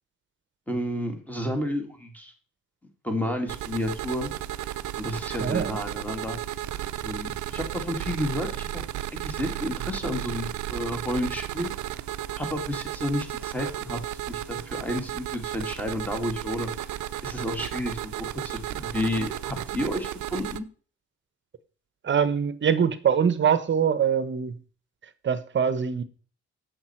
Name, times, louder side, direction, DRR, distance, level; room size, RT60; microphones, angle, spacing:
voice 1, 0.7-2.3 3.0-4.3 5.0-6.4 7.0-8.8 9.1-11.7 12.4-14.0 14.3-16.7 17.2-20.7, left 1 dB, 5° left, 2.1 m, -31 dB
sound 1, 3.5-20.6, right 13 dB, 70° right, 0.6 m, -34 dB
voice 2, 5.4-5.8 22.0-24.5 25.2-26.0, right 7 dB, 40° right, 1.0 m, -23 dB
7.8 x 6.7 x 4.4 m
cardioid pair, 90°, 30 cm